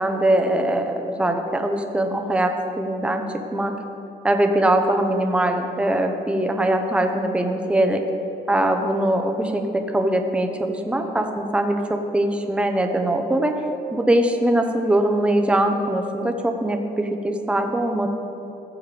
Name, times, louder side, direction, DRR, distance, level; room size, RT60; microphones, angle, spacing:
voice 1, 0.0-3.2 3.5-3.7 4.2-8.0 8.5-13.5 13.9-18.1, right 1 dB, 5° right, 5 dB, 0.7 m, -22 dB
15.5 x 7.1 x 3.4 m, 2.9 s
cardioid pair, 110°, 17 cm